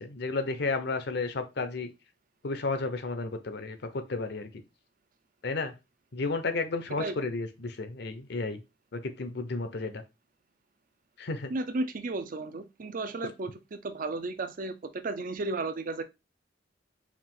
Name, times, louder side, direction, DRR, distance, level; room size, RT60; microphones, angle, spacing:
voice 1, 0.0-1.9 2.4-4.5 5.4-5.7 6.1-8.6 8.9-10.0 11.2-11.5, left 3 dB, 65° left, 0.7 m, -32 dB
voice 2, 11.5-16.0, right 2 dB, 50° right, 0.5 m, -34 dB
4.7 x 2.5 x 3.7 m
head